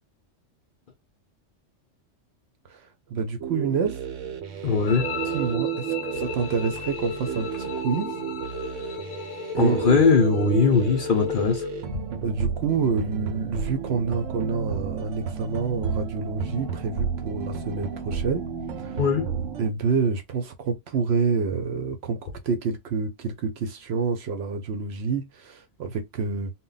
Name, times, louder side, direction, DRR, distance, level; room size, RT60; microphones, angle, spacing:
voice 1, 3.1-4.0 5.3-8.1 9.5-10.0 12.2-18.5 18.8-19.0 19.6-26.5, right 5 dB, 65° right, 0.8 m, -28 dB
sound 1, 3.4-19.7, right 8 dB, 90° right, 1.0 m, -32 dB
voice 2, 4.6-5.1 9.5-11.7 19.0-19.3, left 5 dB, 55° left, 0.6 m, -20 dB
sound 2, 4.9-11.9, left 8 dB, 85° left, 1.0 m, -34 dB
2.1 x 2.1 x 3.8 m
omnidirectional pair, 1.3 m